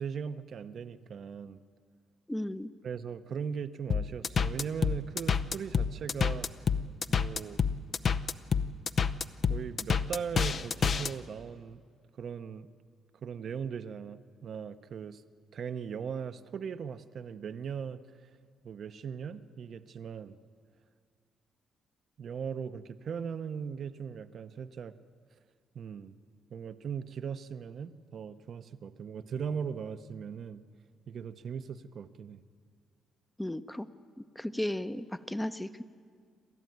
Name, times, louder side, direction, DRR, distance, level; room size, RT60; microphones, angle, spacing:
voice 1, 0.0-1.6 2.8-6.5 7.1-7.6 9.5-11.8 12.2-12.7 13.2-15.2 15.5-18.0 18.6-20.4 22.2-24.9 25.7-26.2 26.5-30.6 31.1-32.4, right 7 dB, 60° right, 11 dB, 0.9 m, -39 dB
voice 2, 2.3-2.7 33.4-33.9 34.4-35.8, left 1 dB, 5° left, 12 dB, 0.8 m, -34 dB
sound 1, 3.9-11.1, left 6 dB, 50° left, 0.7 m, -28 dB
29.0 x 13.0 x 9.4 m, 2.1 s
cardioid pair, 90°, 0 cm